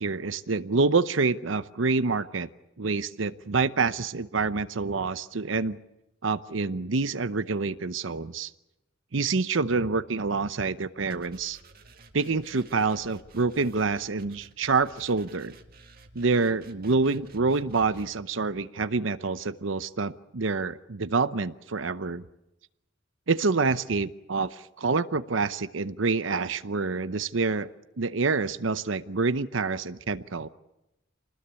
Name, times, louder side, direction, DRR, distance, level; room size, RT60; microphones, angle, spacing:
voice 1, 0.0-2.5 2.8-5.8 6.2-8.5 9.1-11.6 12.1-15.5 16.1-22.2 23.3-27.7 28.0-30.5, right 4 dB, 75° right, 13 dB, 0.8 m, -27 dB
sound 1, 11.1-18.1, right 3 dB, 50° right, 1.8 m, -53 dB
26.0 x 20.0 x 8.3 m, 0.91 s
head